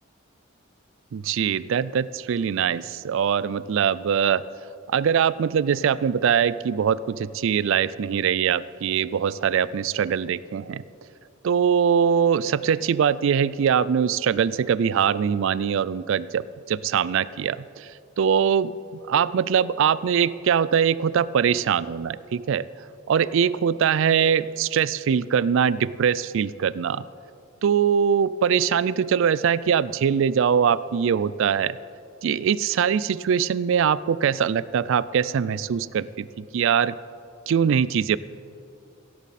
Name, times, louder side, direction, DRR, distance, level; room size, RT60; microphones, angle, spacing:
voice 1, 1.1-4.4 4.9-10.8 11.4-22.7 23.1-27.0 27.6-31.8 32.2-37.0 37.5-38.2, right 7 dB, 65° right, 18 dB, 0.3 m, -22 dB
16.5 x 10.5 x 4.2 m, 2.5 s
head